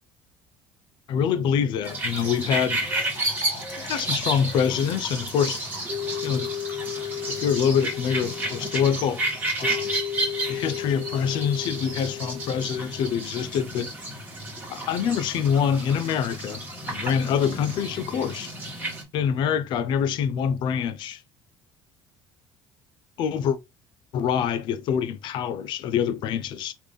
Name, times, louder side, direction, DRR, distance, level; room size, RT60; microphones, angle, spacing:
voice 1, 1.1-2.8 3.8-5.6 6.2-6.5 6.9-9.2 9.6-9.9 10.5-13.9 14.7-18.5 19.1-21.2 23.2-23.6 24.1-26.7, left 7 dB, 60° left, 0.6 m, -25 dB
Trickle dribble / Fill (with liquid), 1.8-9.3, left 3 dB, 45° left, 1.6 m, -47 dB
sound 1, 1.8-19.0, right 2 dB, 20° right, 1.4 m, -32 dB
sound 2, 5.9-13.1, left 9 dB, 20° left, 1.3 m, -34 dB
3.3 x 2.6 x 3.5 m
cardioid pair, 130°, 9 cm